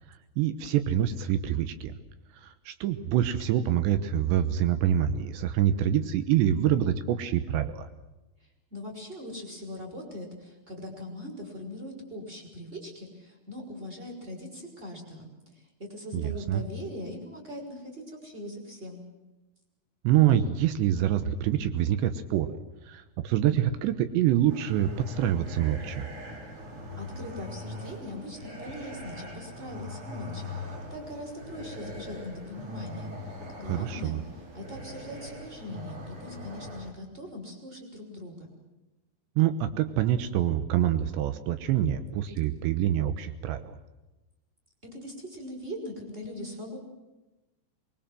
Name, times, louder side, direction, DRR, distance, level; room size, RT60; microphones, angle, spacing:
voice 1, 0.4-1.9 2.3-7.9 16.1-16.6 20.0-22.6 22.8-26.1 33.7-34.2 39.4-43.8, right 11 dB, 80° right, 10 dB, 3.3 m, -26 dB
voice 2, 8.7-19.0 27.0-33.1 33.6-34.2 34.5-38.5 44.8-46.8, left 1 dB, 10° right, 2 dB, 5.8 m, -41 dB
sound 1, 24.5-36.9, left 1 dB, 35° right, 3.9 m, -41 dB
24.0 x 22.5 x 7.7 m, 1.1 s
omnidirectional pair, 5.0 m